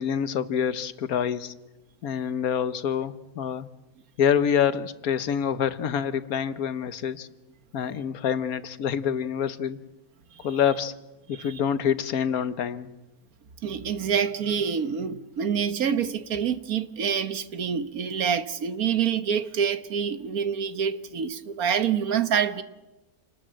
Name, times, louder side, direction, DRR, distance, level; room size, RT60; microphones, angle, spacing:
voice 1, 0.0-1.5 2.0-3.7 4.2-7.3 7.7-9.8 10.4-10.9 11.3-12.9, left 8 dB, 90° left, 1.5 m, -26 dB
voice 2, 13.6-22.6, right 7 dB, 85° right, 1.7 m, -26 dB
28.5 x 19.5 x 7.6 m
omnidirectional pair, 1.5 m